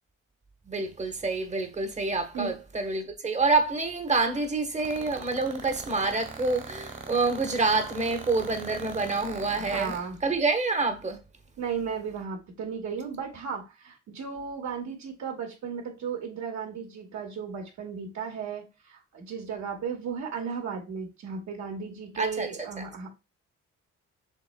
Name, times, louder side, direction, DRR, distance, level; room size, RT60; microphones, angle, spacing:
voice 1, 0.7-9.9 10.2-11.2 22.2-22.5, right 3 dB, 25° right, 1.1 m, -27 dB
sound 1, 4.8-10.0, right 4 dB, 40° right, 1.6 m, -40 dB
voice 2, 9.5-10.2 11.6-23.1, right 6 dB, 65° right, 1.9 m, -35 dB
6.3 x 3.2 x 2.2 m
cardioid pair, 90°, 30 cm